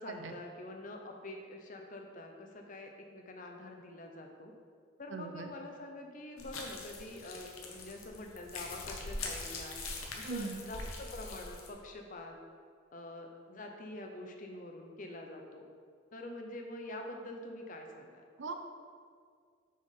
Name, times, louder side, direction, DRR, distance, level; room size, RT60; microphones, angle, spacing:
voice 1, 0.0-4.5 5.0-9.8 10.2-12.4 12.9-15.7 16.1-18.2, left 1 dB, 40° left, 3 dB, 0.7 m, -46 dB
voice 2, 5.1-5.5 10.2-10.6 18.4-18.5, right 4 dB, 65° right, 5 dB, 0.6 m, -39 dB
sound 1, 6.4-11.7, left 3 dB, 90° left, 1.0 m, -43 dB
6.2 x 5.9 x 3.8 m, 2.1 s
head